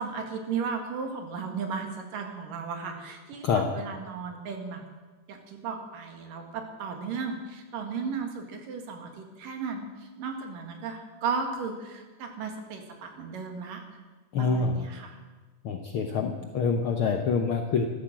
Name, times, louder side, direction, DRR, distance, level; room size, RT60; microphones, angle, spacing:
voice 1, 0.0-4.8 5.3-13.8 14.4-15.2 16.4-16.5, right 5 dB, 90° right, 4 dB, 3.6 m, -35 dB
voice 2, 14.3-14.8 15.6-17.9, left 5 dB, 70° left, 4 dB, 1.2 m, -26 dB
14.5 x 13.0 x 7.5 m, 1.3 s
omnidirectional pair, 3.7 m